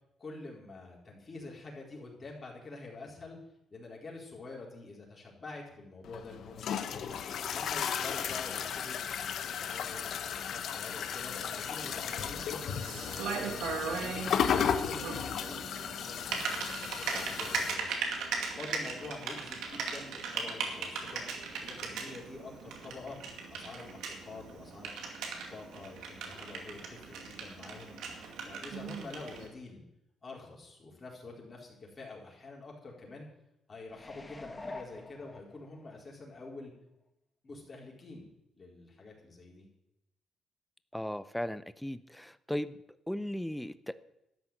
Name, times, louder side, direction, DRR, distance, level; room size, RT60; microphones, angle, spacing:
voice 1, 0.2-3.4 3.7-7.1 7.5-9.0 9.5-14.2 14.5-16.7 16.9-18.0 18.5-21.2 21.6-23.2 23.5-24.9 25.2-27.9 28.4-29.8 30.2-33.3 33.7-36.7 37.4-38.3 38.5-39.7, left 3 dB, 35° left, -2 dB, 4.4 m, -47 dB
sound 1, 6.0-17.8, left 7 dB, 65° left, 1.0 m, -35 dB
Typing, 11.4-29.5, right 5 dB, 85° right, 2.2 m, -39 dB
sound 2, 33.9-36.0 36.4-36.5, left 2 dB, 20° left, 1.3 m, -46 dB
voice 2, 40.9-42.8 43.1-44.0, left 1 dB, 5° left, 14 dB, 0.6 m, -36 dB
12.5 x 6.2 x 9.5 m, 0.85 s
cardioid pair, 90°, 0 cm